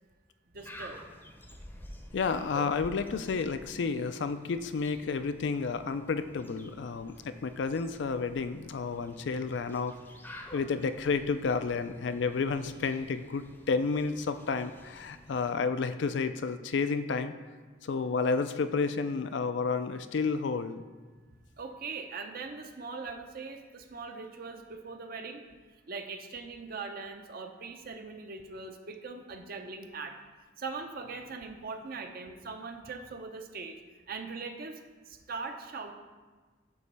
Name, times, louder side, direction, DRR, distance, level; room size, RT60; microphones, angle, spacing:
voice 1, 0.5-1.0 21.6-25.4 25.9-30.2 30.6-33.8 34.1-34.8 35.1-36.0, right 4 dB, 50° right, 5 dB, 0.7 m, -41 dB
sound 1, 0.6-15.6, left 1 dB, 10° left, 0.7 m, -50 dB
voice 2, 2.1-9.9 10.5-17.3 17.8-20.8, left 4 dB, 65° left, 11 dB, 0.4 m, -31 dB
9.3 x 3.1 x 6.7 m, 1.4 s
head